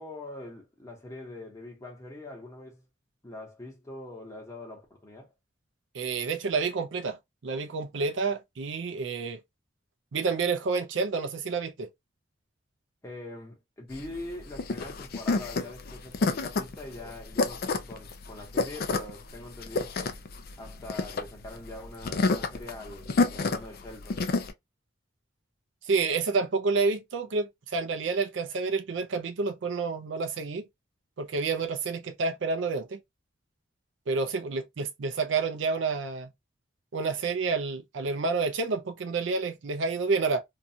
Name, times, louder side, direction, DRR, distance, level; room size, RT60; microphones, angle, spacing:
voice 1, 0.0-2.8 3.2-5.3 13.0-20.2 20.6-24.2, left 2 dB, 15° left, 1.0 m, -43 dB
voice 2, 5.9-7.2 7.4-9.4 10.1-11.9 25.8-30.7 31.2-33.0 34.1-36.3 36.9-40.4, right 4 dB, 65° right, 0.5 m, -29 dB
sound 1, 13.9-24.5, left 3 dB, 50° left, 0.4 m, -29 dB
2.6 x 2.3 x 2.7 m
head